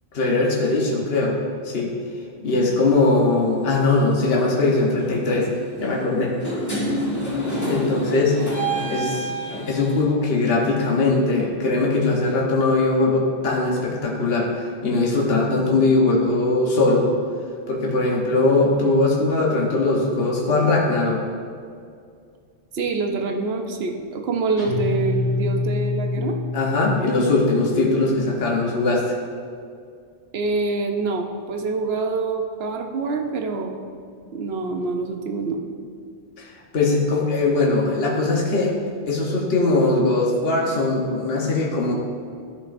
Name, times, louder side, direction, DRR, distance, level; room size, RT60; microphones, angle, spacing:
voice 1, 0.1-1.4 1.6-1.9 2.4-5.5 5.8-6.3 7.6-8.5 8.9-9.3 9.7-17.1 17.7-21.2 26.2-26.3 26.5-29.1 36.4-38.7 39.1-41.9, left 2 dB, 65° left, -3 dB, 1.3 m, -20 dB
sound 1, 3.1-3.3 4.3-4.6 4.9-10.0, right 1 dB, 15° left, 1.5 m, -28 dB
voice 2, 22.7-26.3 27.7-27.9 30.3-33.7 34.3-35.6, right 3 dB, 70° right, 3 dB, 0.9 m, -26 dB
Guitar, 24.6-27.2, left 3 dB, 90° left, 2.0 m, -26 dB
12.5 x 5.4 x 2.6 m, 2.3 s
omnidirectional pair, 1.1 m